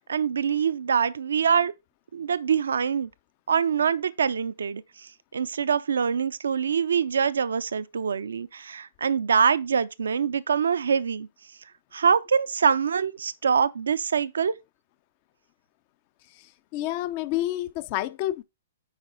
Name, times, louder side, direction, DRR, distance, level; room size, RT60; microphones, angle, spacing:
voice 1, 0.0-1.7 2.1-3.1 3.5-4.8 5.3-11.3 11.9-14.5, right 6 dB, 80° right, 0.5 m, -24 dB
voice 2, 16.3-18.4, left 14 dB, 45° left, 0.5 m, -29 dB
9.8 x 4.1 x 3.9 m
hypercardioid pair, 120°, 0 cm